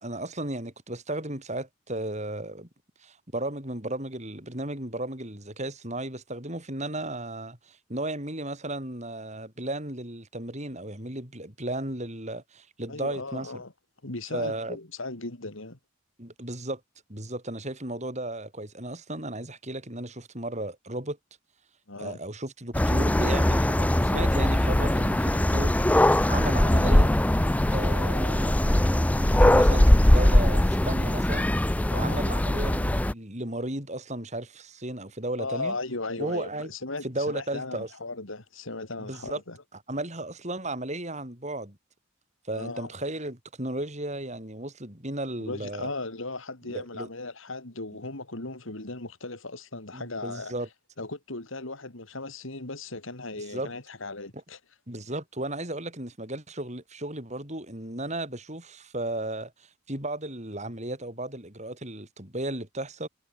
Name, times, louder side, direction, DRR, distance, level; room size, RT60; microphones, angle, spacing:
voice 1, 0.0-2.7 3.0-13.5 14.3-14.8 16.2-16.8 17.1-21.2 22.0-27.1 27.7-28.8 29.1-31.5 31.9-35.7 36.2-36.7 37.0-37.9 39.0-39.4 39.9-41.8 42.5-45.9 46.7-47.1 49.9-50.7 53.4-53.7 54.9-63.1, right 1 dB, 35° right, 6.3 m, -34 dB
voice 2, 12.9-13.7 14.0-15.8 21.9-22.2 31.9-32.2 35.4-39.6 42.5-42.9 45.4-50.5 51.0-54.6, left 2 dB, 70° left, 3.0 m, -37 dB
sound 1, 22.7-33.1, left 1 dB, 5° left, 0.4 m, -21 dB
head